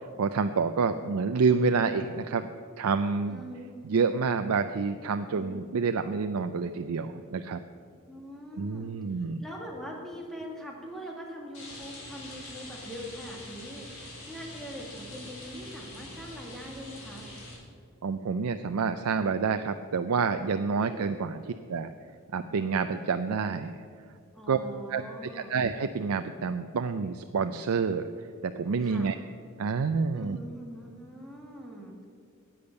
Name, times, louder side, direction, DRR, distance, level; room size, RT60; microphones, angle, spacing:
voice 1, 0.2-2.5 2.8-3.4 3.9-7.6 8.6-9.4 18.0-21.4 21.7-21.9 22.3-23.7 24.5-24.6 24.9-29.1 29.6-30.4, right 5 dB, 80° right, 8 dB, 0.5 m, -28 dB
voice 2, 3.3-3.7 5.3-5.7 8.1-8.9 9.4-17.3 20.8-21.1 24.3-25.5 28.8-29.1 30.1-32.1, equal, ahead, -1 dB, 2.1 m, -43 dB
Rain, 11.5-17.5, left 2 dB, 75° left, 3.8 m, -44 dB
10.5 x 8.6 x 8.0 m, 2.2 s
head